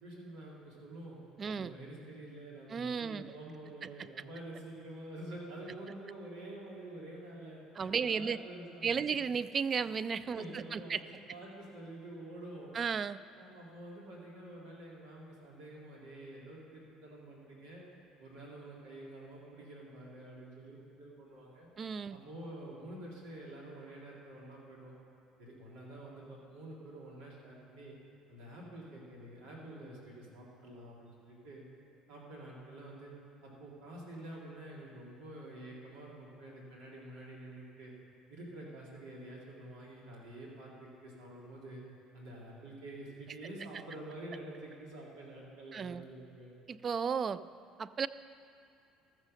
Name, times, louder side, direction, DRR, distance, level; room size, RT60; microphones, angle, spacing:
voice 1, 0.0-1.2 1.5-9.1 9.8-9.9 10.3-12.7 13.4-17.9 18.2-21.7 22.1-24.9 25.4-27.9 28.3-31.6 32.1-33.1 33.4-37.9 38.3-41.8 42.1-46.6, right 1 dB, 85° right, -4 dB, 2.6 m, -48 dB
voice 2, 1.4-1.7 2.7-3.3 7.8-8.4 8.8-11.0 12.7-13.2 21.8-22.2 45.7-46.0 46.7-47.4 47.8-48.1, right 6 dB, 35° right, 16 dB, 0.3 m, -34 dB
13.5 x 6.4 x 6.3 m, 2.5 s
supercardioid pair, 100°, 0 cm